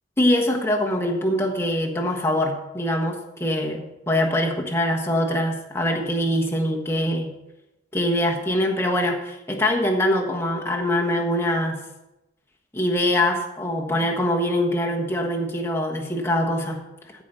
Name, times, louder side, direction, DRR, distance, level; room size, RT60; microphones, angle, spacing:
voice 1, 0.2-7.3 7.9-11.8 12.7-16.8, left 1 dB, 15° left, 1 dB, 1.3 m, -23 dB
15.0 x 5.1 x 5.5 m, 0.96 s
head